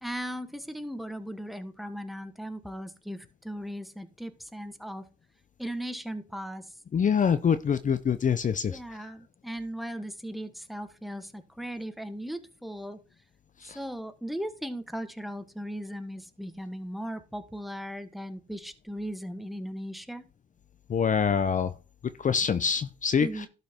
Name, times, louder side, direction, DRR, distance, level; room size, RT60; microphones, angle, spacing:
voice 1, 0.0-5.0 5.6-6.6 8.7-13.0 13.6-20.3 23.2-23.5, equal, ahead, 1.4 m, -37 dB
voice 2, 6.9-8.8 13.6-13.8 20.9-21.7 22.2-23.5, left 7 dB, 40° left, 0.7 m, -25 dB
12.0 x 5.6 x 4.4 m
cardioid pair, 90°, 20 cm